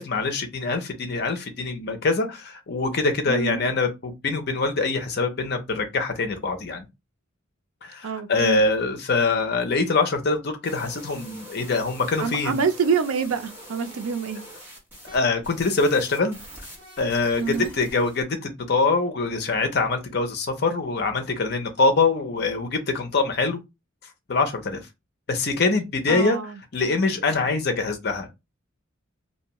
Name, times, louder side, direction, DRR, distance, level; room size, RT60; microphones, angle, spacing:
voice 1, 0.0-6.8 7.8-12.7 15.1-16.4 17.0-23.6 24.3-24.8 25.3-28.3, left 3 dB, 50° left, 0.6 m, -24 dB
voice 2, 3.3-3.6 8.0-8.6 12.2-14.4 17.4-17.7 26.1-26.5, right 5 dB, 85° right, 0.4 m, -26 dB
sound 1, 10.6-15.2 15.4-18.2, equal, 10° right, 0.9 m, -44 dB
2.6 x 2.2 x 2.9 m
head